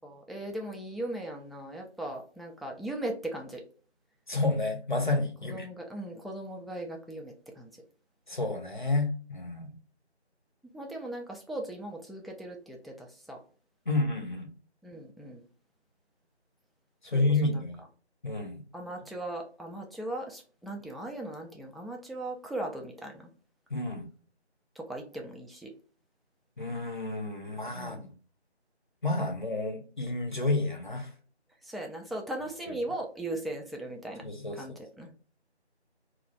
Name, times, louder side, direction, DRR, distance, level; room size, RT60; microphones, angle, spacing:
voice 1, 0.0-3.6 5.5-7.7 10.7-13.4 14.8-15.5 17.1-17.2 18.7-23.3 24.8-25.7 27.7-28.1 31.6-34.2 34.6-35.1, right 1 dB, ahead, 0 dB, 0.3 m, -38 dB
voice 2, 4.3-5.7 8.3-9.7 13.9-14.5 17.0-17.8 18.2-18.6 23.7-24.0 26.6-28.1 29.0-31.1 32.7-32.8 34.2-34.7, left 2 dB, 45° left, 4 dB, 0.6 m, -30 dB
2.3 x 2.2 x 3.1 m, 0.40 s
figure-of-eight pair, 175°, 34 cm